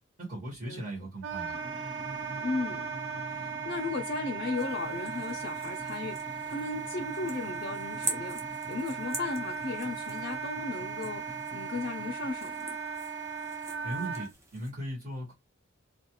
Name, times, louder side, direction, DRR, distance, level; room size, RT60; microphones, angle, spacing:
voice 1, 0.2-1.6 13.8-15.3, right 1 dB, 40° right, 1.2 m, -38 dB
Wind instrument woodwind instrument, 1.2-14.3, right 6 dB, 60° right, 0.6 m, -37 dB
sound 1, 1.5-12.3, equal, ahead, 1.2 m, -48 dB
voice 2, 2.4-2.9 3.3-12.8, left 3 dB, 50° left, 0.5 m, -36 dB
sound 2, 4.5-14.7, right 2 dB, 15° right, 0.6 m, -44 dB
2.4 x 2.3 x 2.9 m
head